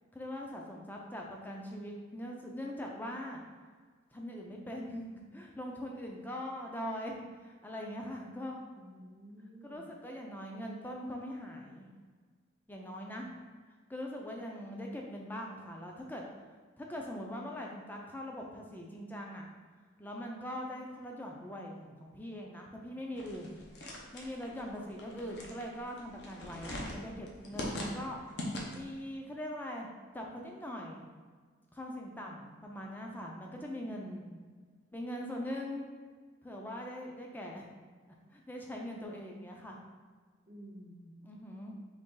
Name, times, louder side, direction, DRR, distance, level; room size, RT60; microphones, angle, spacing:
voice 1, 0.1-3.4 4.1-8.6 9.6-11.9 12.7-13.3 13.9-16.2 16.8-19.5 20.0-23.6 24.1-28.2 28.7-29.9 30.1-31.0 31.7-34.2 34.9-35.9 36.4-37.6 38.3-39.8 41.2-41.7, equal, 10° left, 0 dB, 0.4 m, -41 dB
voice 2, 8.7-9.9 24.7-24.8 33.8-34.4 40.5-41.2, equal, 25° right, -6 dB, 0.7 m, -52 dB
sound 1, 23.2-29.0, left 1 dB, 60° left, 0.7 m, -42 dB
4.0 x 3.1 x 3.7 m, 1.5 s
head